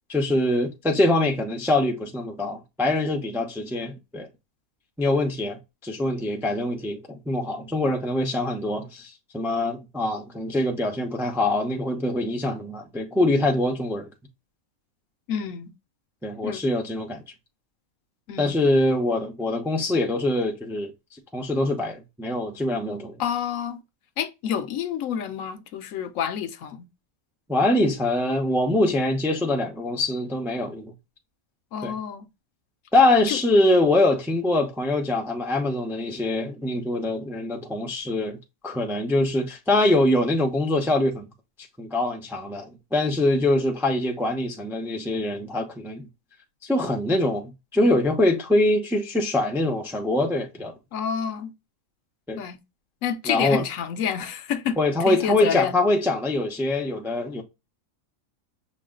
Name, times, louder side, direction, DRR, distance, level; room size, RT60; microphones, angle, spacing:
voice 1, 0.1-4.3 5.0-14.1 16.2-17.2 18.4-20.9 21.3-23.2 27.5-30.9 31.8-31.9 32.9-38.4 38.6-41.2 41.8-46.1 46.6-50.7 52.3-52.4 53.3-53.6 54.8-57.4, left 2 dB, 5° right, 0.4 m, -24 dB
voice 2, 15.3-15.7 16.4-16.6 18.3-18.6 23.2-23.8 24.2-26.9 31.7-32.3 33.3-33.4 50.9-51.5 52.4-52.6 53.0-54.8 55.1-55.7, left 8 dB, 70° left, 0.9 m, -28 dB
6.1 x 2.3 x 3.7 m
omnidirectional pair, 1.5 m